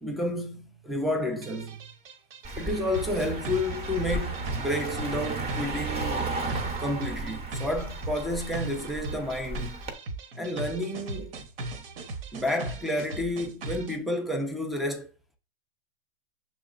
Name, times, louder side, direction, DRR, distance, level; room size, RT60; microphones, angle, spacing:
voice 1, 0.0-1.9 2.6-6.3 6.8-9.8 10.3-11.3 12.3-15.1, left 1 dB, ahead, 0.3 m, -30 dB
sound 1, 1.4-14.0, right 2 dB, 70° right, 0.9 m, -38 dB
Car passing by, 2.4-9.9, right 3 dB, 20° right, 0.7 m, -34 dB
6.6 x 3.0 x 2.4 m
hypercardioid pair, 130°, 30 cm